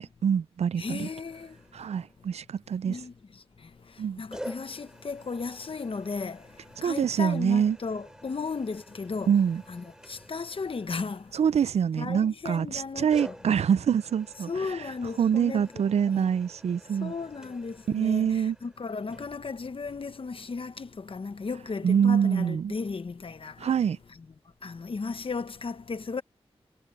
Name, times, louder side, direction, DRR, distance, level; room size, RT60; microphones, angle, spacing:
voice 1, 0.0-1.1 1.7-3.0 4.0-4.2 6.8-7.8 9.3-9.6 11.3-14.5 15.2-17.1 17.9-18.6 21.8-22.7 23.6-24.0, right 7 dB, 90° right, 0.4 m, -25 dB
voice 2, 0.8-1.5 2.9-3.1 4.2-6.4 6.8-9.4 9.7-11.3 12.0-13.4 14.5-15.8 16.1-16.3 17.0-23.7 24.1-24.3 24.6-26.2, left 4 dB, 60° left, 1.1 m, -35 dB
sound 1, 0.9-2.4 4.3-12.1 13.1-20.1, equal, 5° right, 4.1 m, -49 dB
wide cardioid pair, 75°, 11 cm